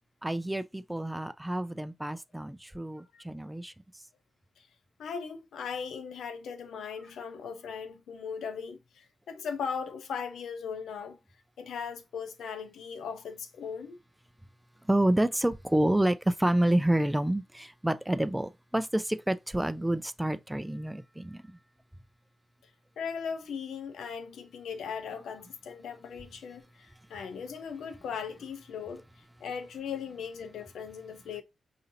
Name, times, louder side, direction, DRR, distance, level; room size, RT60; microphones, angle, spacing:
voice 1, 0.2-3.7 14.9-21.4, right 1 dB, 10° right, 0.4 m, -28 dB
voice 2, 5.0-11.2 11.6-14.0 22.6-22.7 23.0-29.0 29.4-31.4, left 6 dB, 90° left, 0.7 m, -38 dB
5.1 x 2.8 x 2.6 m
cardioid pair, 65°, 0 cm